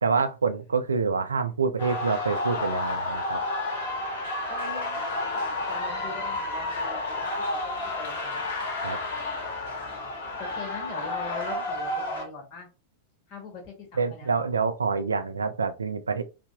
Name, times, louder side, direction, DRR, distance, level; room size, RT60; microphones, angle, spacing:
voice 1, 0.0-3.4 8.8-9.0 14.0-16.2, right 5 dB, 75° right, 0.3 m, -27 dB
sound 1, 1.8-12.2, left 2 dB, 55° left, 0.8 m, -31 dB
voice 2, 4.5-7.3 7.6-7.7 8.0-8.5 10.4-12.7 13.3-14.5, left 4 dB, 40° left, 1.1 m, -42 dB
3.2 x 2.1 x 2.3 m
figure-of-eight pair, 90°, 0 cm